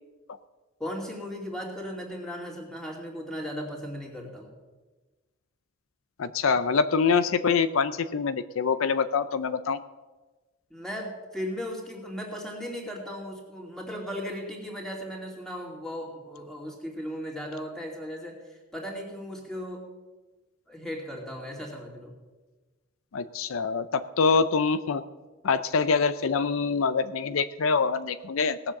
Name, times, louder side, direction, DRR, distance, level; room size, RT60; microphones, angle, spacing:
voice 1, 0.8-4.5 10.7-19.8 20.7-22.1, equal, 5° left, -1 dB, 2.6 m, -37 dB
voice 2, 6.2-9.8 23.1-25.0 25.4-28.8, left 5 dB, 80° left, 13 dB, 0.5 m, -25 dB
18.0 x 7.3 x 7.1 m, 1.2 s
head